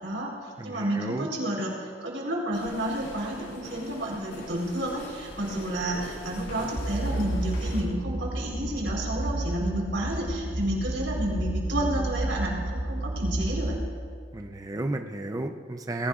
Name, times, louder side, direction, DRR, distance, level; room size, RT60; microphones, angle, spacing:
voice 1, 0.0-1.7 2.0-13.8, right 1 dB, 90° right, -2 dB, 3.9 m, -31 dB
voice 2, 0.6-1.3 14.3-16.1, right 2 dB, 20° right, 5 dB, 0.5 m, -32 dB
sound 1, 2.5-7.8, left 1 dB, 70° left, 3.9 m, -41 dB
sound 2, 6.8-13.8, right 1 dB, 50° right, 1.7 m, -31 dB
20.0 x 16.5 x 2.4 m, 2.1 s
head